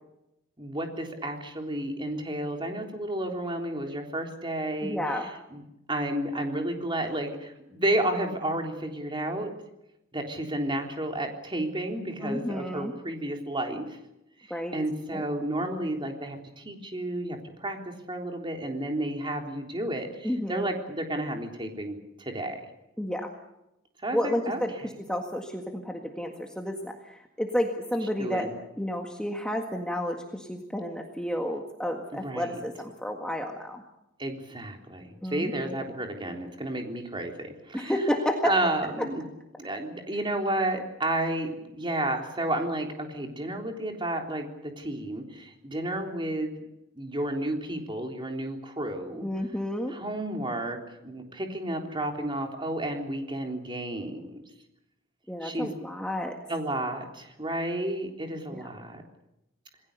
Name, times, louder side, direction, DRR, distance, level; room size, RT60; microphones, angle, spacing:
voice 1, 0.6-5.6 5.9-9.5 10.1-14.0 14.4-17.8 18.1-22.7 24.0-24.2 24.5-24.6 28.2-28.5 32.1-32.6 34.2-38.0 38.4-39.2 39.6-46.7 47.0-49.3 49.9-54.4 55.4-55.7 56.5-59.0, right 1 dB, 25° right, 3 dB, 3.7 m, -32 dB
voice 2, 4.8-5.3 12.2-12.9 14.5-14.8 15.1-15.2 20.2-20.6 23.0-23.3 24.1-28.5 28.8-33.8 35.2-35.7 37.7-38.5 49.2-50.0 55.3-56.4 58.5-58.7, equal, 5° left, 2 dB, 1.8 m, -31 dB
27.5 x 20.0 x 6.9 m, 0.88 s
head